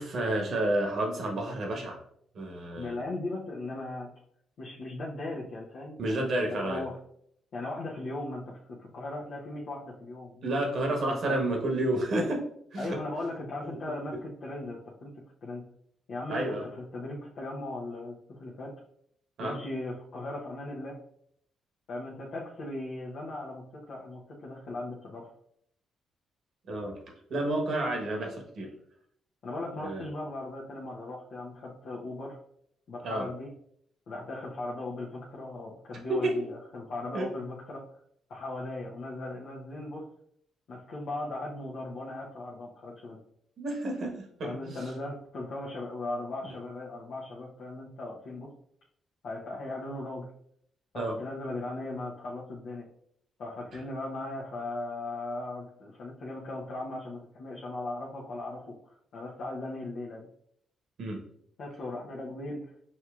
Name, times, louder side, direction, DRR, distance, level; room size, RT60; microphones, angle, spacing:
voice 1, 0.0-2.0 2.3-3.0 6.0-6.8 10.4-12.4 12.7-13.0 13.7-13.8 16.3-16.6 19.4-19.6 26.7-26.9 27.3-28.7 29.8-30.0 33.0-33.2 36.1-36.3 37.1-37.3 43.6-44.8 50.9-51.2 61.0-61.2, right 1 dB, 65° right, 1 dB, 1.1 m, -30 dB
voice 2, 2.7-4.1 4.6-6.2 6.5-6.9 7.5-10.5 10.8-11.4 12.8-15.6 16.1-18.7 19.4-21.0 21.9-25.3 29.4-32.4 32.9-33.5 34.1-37.8 38.3-40.1 40.7-43.2 44.4-48.5 49.2-50.3 50.9-52.8 53.4-60.3 61.6-62.6, left 2 dB, 65° left, -5 dB, 0.8 m, -38 dB
5.4 x 3.0 x 2.4 m, 0.68 s
hypercardioid pair, 50°, 0 cm